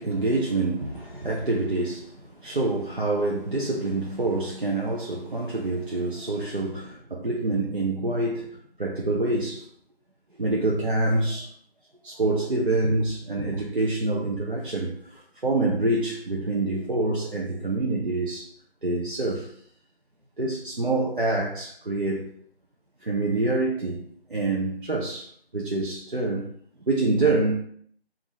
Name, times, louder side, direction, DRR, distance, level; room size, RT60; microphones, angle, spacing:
voice 1, 0.0-9.6 10.3-11.5 12.0-18.5 18.8-19.5 20.4-22.3 23.0-26.5 26.8-27.5, right 2 dB, 55° right, 0.6 m, -26 dB
3.5 x 2.5 x 4.0 m
figure-of-eight pair, 180°, 32 cm